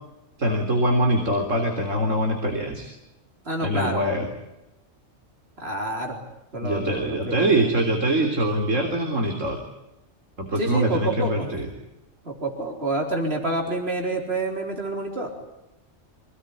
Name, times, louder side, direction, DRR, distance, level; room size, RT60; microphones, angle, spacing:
voice 1, 0.4-2.9 3.6-4.3 6.6-9.6 10.4-11.7, right 1 dB, 70° right, 3 dB, 3.9 m, -23 dB
voice 2, 3.5-4.0 5.6-6.2 6.5-7.6 10.6-11.5 12.2-15.3, right 2 dB, 50° right, 1 dB, 4.4 m, -28 dB
26.5 x 19.0 x 9.9 m, 0.94 s
omnidirectional pair, 1.3 m